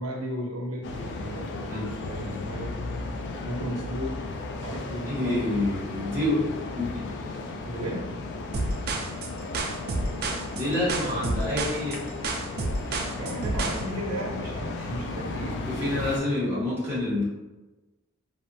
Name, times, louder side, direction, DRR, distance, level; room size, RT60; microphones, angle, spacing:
voice 1, 0.0-2.8 3.4-4.1 4.6-5.3 7.6-8.1 13.2-15.6, equal, 75° right, -1 dB, 0.6 m, -34 dB
sound 1, 0.8-16.2, left 3 dB, 55° left, 0.3 m, -35 dB
voice 2, 5.1-6.4 6.7-7.0 10.5-12.0 15.6-17.2, left 1 dB, 10° right, -9 dB, 0.8 m, -27 dB
sound 2, 8.5-13.8, right 2 dB, 45° right, 0.3 m, -29 dB
2.7 x 2.1 x 2.5 m, 1.1 s
head